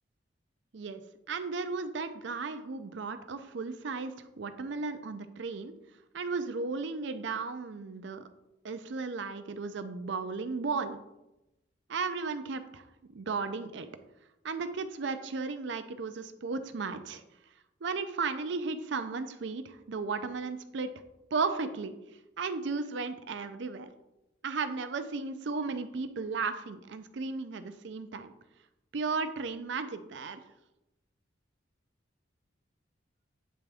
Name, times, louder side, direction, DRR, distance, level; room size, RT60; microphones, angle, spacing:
voice 1, 1.3-5.7 6.1-8.2 8.6-11.0 11.9-13.9 14.4-17.2 17.8-20.9 21.3-22.0 22.4-23.9 24.4-28.3 28.9-30.4, right 4 dB, 70° right, 10 dB, 0.5 m, -35 dB
8.5 x 3.4 x 3.4 m, 0.94 s
head